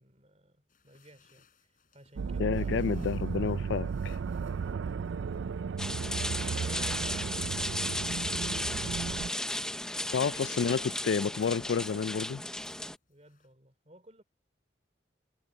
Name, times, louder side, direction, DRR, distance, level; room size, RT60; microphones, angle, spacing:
voice 1, 0.0-3.1 4.8-6.0 6.3-9.1 10.0-10.9 13.1-14.2, right 1 dB, 35° right, 4.0 m, -56 dB
sound 1, 0.7-13.5, left 6 dB, 45° left, 6.6 m, -69 dB
sound 2, 2.2-9.3, right 5 dB, 85° right, 0.4 m, -34 dB
voice 2, 2.4-4.2 10.1-12.4, left 6 dB, 75° left, 0.4 m, -30 dB
sound 3, 5.8-13.0, left 1 dB, 5° left, 0.8 m, -35 dB
head